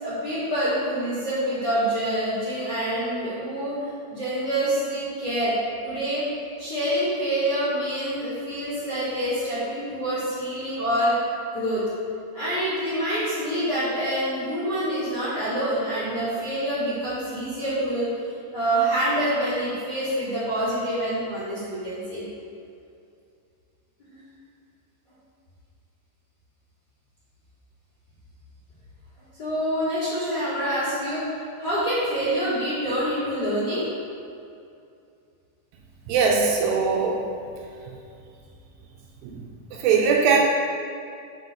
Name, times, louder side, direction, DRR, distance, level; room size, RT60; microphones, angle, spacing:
voice 1, 0.0-5.5 5.8-6.3 6.6-11.1 11.5-11.8 12.3-22.2 24.0-24.2 29.4-33.8, right 1 dB, 35° left, -11 dB, 1.9 m, -26 dB
voice 2, 36.1-37.2 39.2-39.4 39.7-40.5, right 5 dB, 80° right, 0 dB, 2.6 m, -20 dB
8.0 x 5.4 x 5.5 m, 2.5 s
omnidirectional pair, 5.1 m